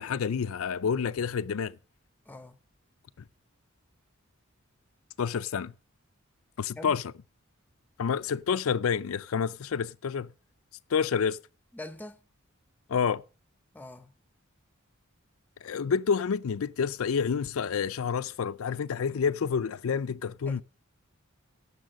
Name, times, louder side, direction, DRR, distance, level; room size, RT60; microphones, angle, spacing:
voice 1, 0.0-1.8 5.2-5.7 6.6-7.0 8.0-10.3 10.9-11.4 12.9-13.2 15.6-20.6, left 6 dB, 80° left, 0.4 m, -28 dB
voice 2, 2.3-2.6 6.7-7.0 11.7-12.2 13.7-14.1 20.5-20.6, left 2 dB, 10° left, 0.7 m, -43 dB
10.5 x 7.0 x 6.4 m
head